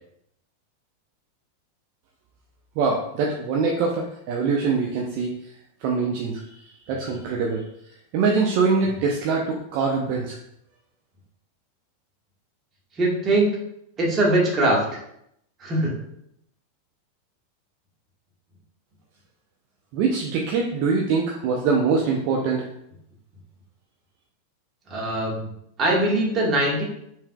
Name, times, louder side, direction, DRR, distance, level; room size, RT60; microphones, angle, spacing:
voice 1, 2.8-5.3 5.8-6.4 6.9-7.6 8.1-10.3 19.9-22.6, right 4 dB, 50° right, 0 dB, 0.6 m, -23 dB
voice 2, 12.9-13.5 14.0-15.0 15.6-15.9 24.9-25.5 25.8-26.8, right 1 dB, 25° right, -3 dB, 1.6 m, -21 dB
5.5 x 3.3 x 2.3 m, 0.75 s
figure-of-eight pair, 90°, 0 cm